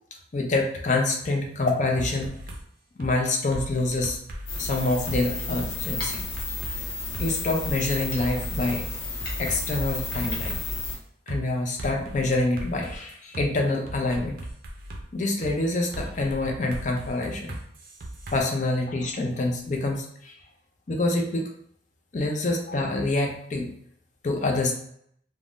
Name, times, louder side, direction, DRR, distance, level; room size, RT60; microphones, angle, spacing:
voice 1, 0.3-2.4 3.0-4.2 4.6-6.2 7.2-8.8 9.4-10.6 11.3-14.4 15.1-17.6 18.3-20.3 20.9-21.5 22.1-23.7 24.2-24.7, left 2 dB, 40° left, 2 dB, 0.5 m, -26 dB
sound 1, 2.0-2.6 3.0-3.1 3.5-5.2 5.6-6.8 7.1-7.3 7.6-10.9 11.3-11.4 11.8-13.5 13.9-15.0 15.4-15.5 15.9-18.4, right 1 dB, 50° right, 0.5 m, -37 dB
sound 2, 4.5-10.9, left 2 dB, 60° left, 0.8 m, -32 dB
3.4 x 2.1 x 2.5 m, 0.69 s
head